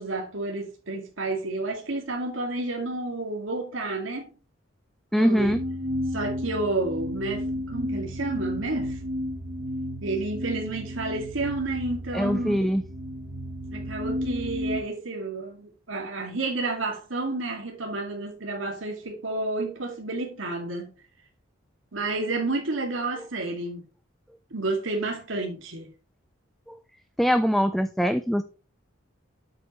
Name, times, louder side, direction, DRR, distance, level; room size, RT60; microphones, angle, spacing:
voice 1, 0.0-4.3 5.1-5.6 6.1-9.0 10.0-12.7 13.7-20.9 21.9-23.8 24.5-25.9, right 2 dB, 85° right, 2.2 m, -30 dB
voice 2, 5.1-5.6 12.1-12.8 26.7-26.8 27.2-28.4, equal, ahead, 0.4 m, -23 dB
sound 1, 5.4-14.8, equal, 55° right, 1.9 m, -33 dB
7.9 x 7.8 x 3.1 m
head